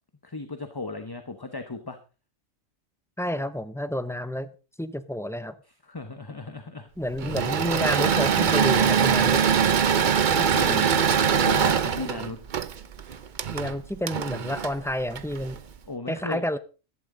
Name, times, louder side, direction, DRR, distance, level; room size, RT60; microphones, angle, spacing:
voice 1, 0.2-2.0 5.8-6.9 7.2-7.3 10.3-11.0 11.4-12.4 15.9-16.4, left 3 dB, 20° left, 8 dB, 0.9 m, -35 dB
voice 2, 3.2-4.5 4.8-5.6 7.0-9.4 13.5-15.6 16.1-16.6, equal, 5° left, 12 dB, 0.4 m, -29 dB
Engine / Mechanisms, 7.2-15.6, right 7 dB, 45° right, 0.7 m, -23 dB
15.0 x 11.5 x 3.8 m, 0.33 s
omnidirectional pair, 1.4 m